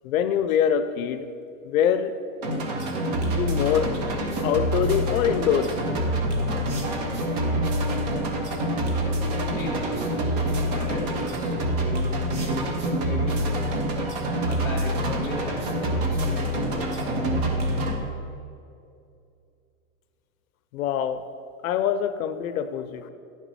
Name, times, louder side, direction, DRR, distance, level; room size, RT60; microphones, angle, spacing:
voice 1, 0.0-1.3 1.6-2.2 2.7-2.8 3.2-3.9 4.4-5.9 20.7-21.3 21.6-23.1, left 8 dB, 80° left, 11 dB, 0.6 m, -24 dB
sound 1, 2.4-18.0, right 1 dB, 30° right, 0.7 m, -26 dB
voice 2, 9.0-10.3 10.7-12.7 13.0-13.9 14.4-17.3, left 1 dB, 5° left, -8 dB, 1.2 m, -37 dB
10.5 x 6.1 x 4.1 m, 2.5 s
supercardioid pair, 175°, 42 cm